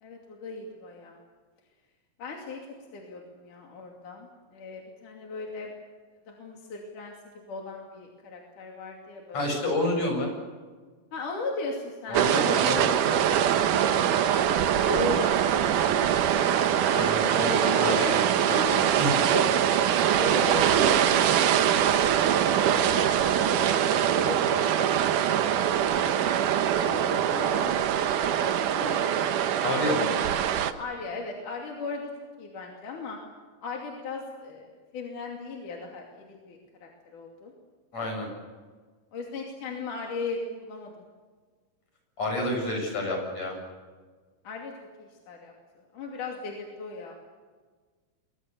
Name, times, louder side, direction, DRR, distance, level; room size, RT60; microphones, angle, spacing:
voice 1, 0.0-1.2 2.2-2.6 2.9-5.7 6.3-7.1 7.5-9.4 11.1-12.6 13.4-14.1 14.9-16.4 17.7-21.7 22.9-23.8 24.1-24.9 25.2-26.1 26.6-27.9 28.4-29.2 30.8-32.1 32.4-33.2 33.6-37.5 39.1-41.1 44.4-44.7 45.0-45.5 45.9-47.1, left 3 dB, 65° left, 0 dB, 4.2 m, -37 dB
voice 2, 9.3-10.3 12.1-12.9 16.9-18.0 18.5-19.2 29.6-30.1 37.9-38.3 42.2-43.6, left 1 dB, 50° left, 2 dB, 9.0 m, -29 dB
sound 1, 12.1-30.7, right 9 dB, 70° right, 2.6 m, -23 dB
29.0 x 24.0 x 6.9 m, 1.4 s
omnidirectional pair, 3.9 m